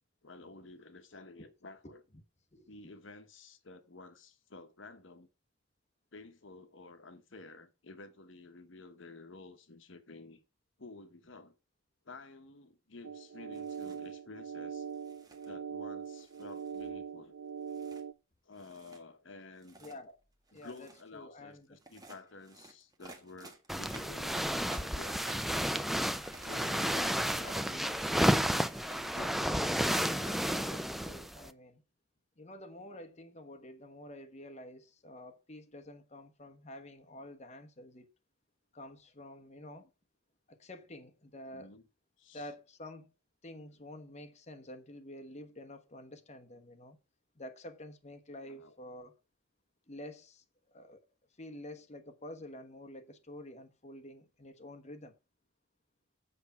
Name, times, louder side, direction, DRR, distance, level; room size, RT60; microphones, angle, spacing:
voice 1, 0.2-2.0 2.7-5.3 6.1-10.4 10.8-11.5 12.0-14.9 15.4-17.3 18.4-19.8 20.5-24.4 24.8-25.3 26.4-28.0 28.4-28.8 29.1-30.8 41.5-41.9 42.2-42.5 48.5-48.8, left 3 dB, 60° left, 1.1 m, -52 dB
sound 1, 13.0-18.1, right 7 dB, 70° right, 0.5 m, -42 dB
sound 2, 13.5-14.0 14.9-15.5 16.2-17.0 17.7-18.0 18.6-19.0 19.5-20.0 20.5-21.1 21.8-30.5, right 2 dB, 20° right, 1.7 m, -53 dB
voice 2, 19.8-20.2 20.5-21.7 26.8-27.4 30.5-31.8 32.4-38.1 38.7-39.9 40.5-41.7 42.3-43.1 43.4-47.0 47.3-49.2 49.9-51.1 51.4-55.2, left 1 dB, 35° left, 1.2 m, -49 dB
sound 3, 23.7-31.5, equal, ahead, 0.4 m, -32 dB
8.2 x 5.9 x 6.8 m
head